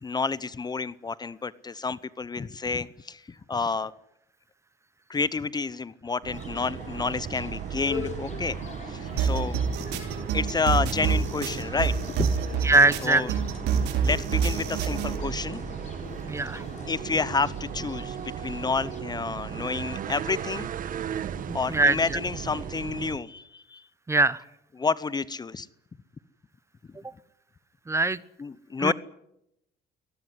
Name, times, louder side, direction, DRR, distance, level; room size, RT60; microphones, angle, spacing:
voice 1, 0.0-3.9 5.1-8.6 8.8-9.9 10.3-12.3 13.0-13.3 14.0-15.7 16.8-20.7 21.3-23.9 24.8-25.7 26.9-27.0 28.4-28.9, left 4 dB, 25° left, 18 dB, 0.8 m, -30 dB
sound 1, 6.2-23.2, right 9 dB, 55° right, 1.4 m, -36 dB
sound 2, 6.3-19.0, left 5 dB, 45° left, 3.4 m, -43 dB
sound 3, 9.2-15.2, right 6 dB, 85° right, 5.1 m, -27 dB
voice 2, 12.6-13.2 16.3-16.6 21.7-22.0 24.1-24.4 27.9-28.2 28.8-28.9, right 2 dB, 15° right, 18 dB, 1.0 m, -21 dB
23.5 x 19.0 x 9.7 m, 0.81 s
cardioid pair, 110°, 17 cm